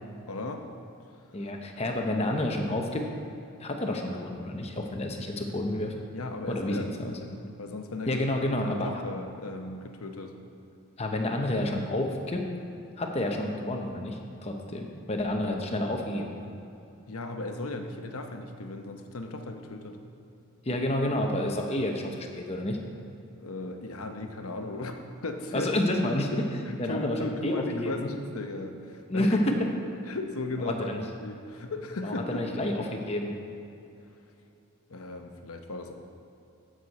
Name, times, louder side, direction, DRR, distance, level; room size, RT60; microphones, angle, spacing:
voice 1, 0.3-0.6 6.1-10.3 17.1-20.0 23.4-25.7 26.3-29.3 30.0-30.9 31.2-32.5 34.9-35.9, left 2 dB, 85° left, 5 dB, 0.9 m, -36 dB
voice 2, 1.3-3.1 3.6-5.9 6.5-7.2 8.1-8.9 11.0-12.4 13.0-16.5 20.7-22.8 25.5-26.3 26.8-28.1 29.1-29.6 30.7-31.0 32.0-33.4, left 1 dB, 30° left, 2 dB, 0.9 m, -29 dB
14.5 x 6.4 x 4.2 m, 2.8 s
head